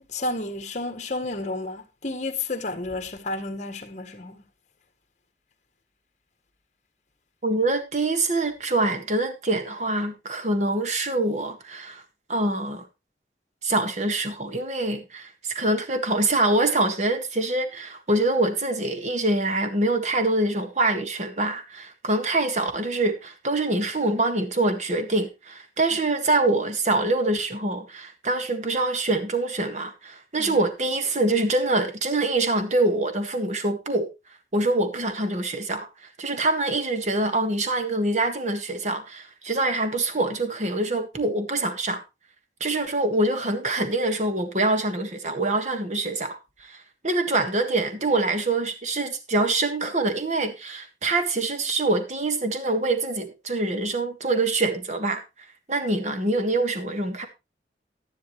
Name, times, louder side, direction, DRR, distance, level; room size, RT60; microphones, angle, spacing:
voice 1, 0.1-4.4 25.9-26.0 30.4-30.6, left 2 dB, 40° left, 1.7 m, -31 dB
voice 2, 7.4-12.0 12.3-12.8 13.6-34.1 34.5-42.0 42.6-55.2 55.7-57.3, right 2 dB, 40° right, 1.7 m, -25 dB
12.0 x 10.5 x 3.1 m
head